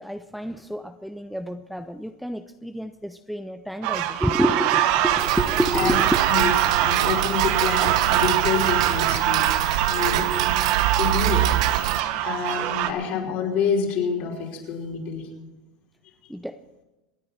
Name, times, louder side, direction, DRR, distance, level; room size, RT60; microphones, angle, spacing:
voice 1, 0.0-6.1 16.3-16.6, equal, ahead, 9 dB, 0.5 m, -29 dB
sound 1, 3.8-12.9, right 12 dB, 55° right, 1.3 m, -23 dB
Tick-tock, 5.2-12.0, right 12 dB, 80° right, 0.6 m, -26 dB
voice 2, 6.3-9.5 9.9-11.4 12.2-15.3, left 6 dB, 50° left, -1 dB, 5.3 m, -28 dB
27.0 x 9.9 x 4.6 m, 1.0 s
supercardioid pair, 140°, 3 cm